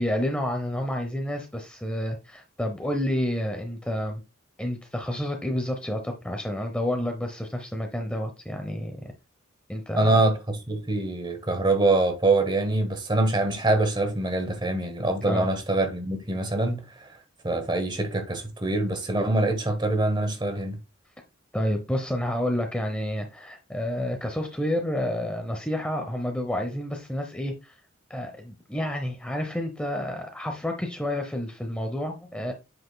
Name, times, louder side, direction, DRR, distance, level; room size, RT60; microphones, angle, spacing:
voice 1, 0.0-4.2 4.6-9.1 9.7-10.2 15.3-15.5 21.5-27.8 28.1-32.5, left 1 dB, 5° left, 0.8 m, -29 dB
voice 2, 10.0-17.2 17.4-20.8, right 2 dB, 20° right, 1.2 m, -24 dB
7.9 x 5.9 x 2.3 m
head